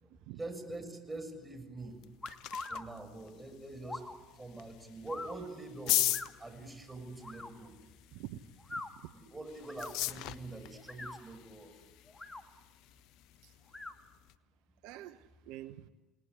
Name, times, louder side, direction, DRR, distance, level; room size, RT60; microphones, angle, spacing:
voice 1, 0.3-2.0 2.7-6.1 6.4-7.8 9.1-11.8, right 2 dB, 15° right, 7 dB, 6.6 m, -45 dB
sound 1, 1.8-14.4, left 14 dB, 65° left, 0.9 m, -40 dB
sound 2, 2.2-2.8 3.8-4.1 5.1-5.4 6.1-6.3 7.2-7.5 8.6-8.9 9.6-9.9 10.8-11.2 12.1-12.4 13.7-13.9, left 2 dB, 20° left, 2.5 m, -42 dB
voice 2, 8.1-8.4 8.7-9.1 13.4-13.5 14.8-15.9, right 14 dB, 70° right, 11 dB, 0.9 m, -47 dB
29.5 x 19.5 x 9.7 m, 1.2 s
hypercardioid pair, 70°, 0 cm